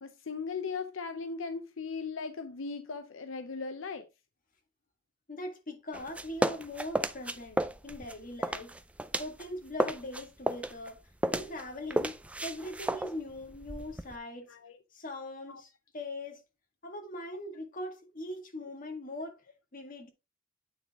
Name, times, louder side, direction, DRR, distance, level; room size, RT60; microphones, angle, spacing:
voice 1, 0.0-4.1 14.5-14.8 15.5-15.6, left 4 dB, 80° left, 0.7 m, -38 dB
voice 2, 5.3-8.7 9.2-11.0 11.3-14.5 14.9-16.4 16.8-19.5 19.7-20.1, left 1 dB, 45° left, 1.9 m, -41 dB
sound 1, 5.9-9.5 9.7-14.2, right 1 dB, 5° right, 0.4 m, -33 dB
9.2 x 4.0 x 3.6 m
head